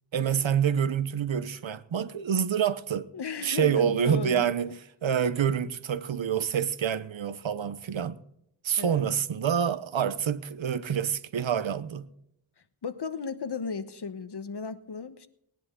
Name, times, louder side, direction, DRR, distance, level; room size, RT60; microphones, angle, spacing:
voice 1, 0.1-3.1 3.4-8.2 8.6-12.1, right 8 dB, 85° right, 0.9 m, -27 dB
voice 2, 3.1-4.5 8.8-9.1 12.8-15.3, left 5 dB, 60° left, 1.2 m, -35 dB
20.5 x 10.5 x 3.8 m
wide cardioid pair, 65°, 45 cm